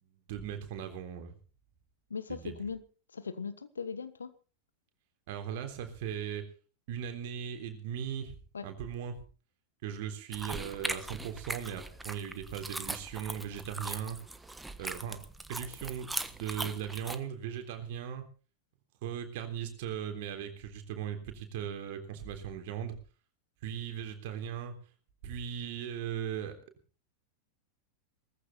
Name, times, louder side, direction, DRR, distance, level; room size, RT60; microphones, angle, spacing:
voice 1, 0.0-1.3 2.3-2.6 5.3-6.5 6.9-8.4 8.6-9.1 9.8-14.2 14.8-15.2 15.5-18.2 19.0-23.0 23.6-24.7 25.2-26.6, right 9 dB, 50° right, 6 dB, 3.5 m, -38 dB
voice 2, 2.1-2.8 3.1-4.3 8.5-8.7, left 5 dB, 70° left, 13 dB, 1.4 m, -39 dB
sound 1, 10.3-17.2, right 2 dB, 5° right, 1.3 m, -40 dB
18.5 x 15.0 x 4.3 m, 0.37 s
figure-of-eight pair, 90°, 0 cm